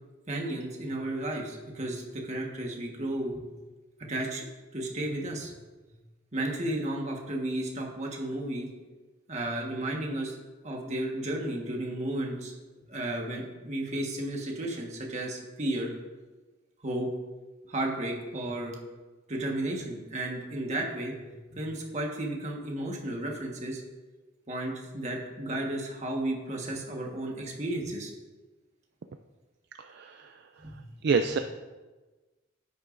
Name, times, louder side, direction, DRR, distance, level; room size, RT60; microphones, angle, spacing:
voice 1, 0.3-3.4 4.1-4.4 4.7-5.5 6.3-8.7 9.3-10.4 10.6-12.5 12.9-15.9 16.8-17.1 17.7-18.8 19.3-21.2 21.5-23.8 24.5-28.1 30.6-30.8, right 1 dB, 35° right, 0 dB, 1.4 m, -33 dB
voice 2, 29.8-30.3 31.0-31.4, right 5 dB, 55° right, 7 dB, 0.4 m, -27 dB
10.0 x 9.6 x 2.6 m, 1.2 s
head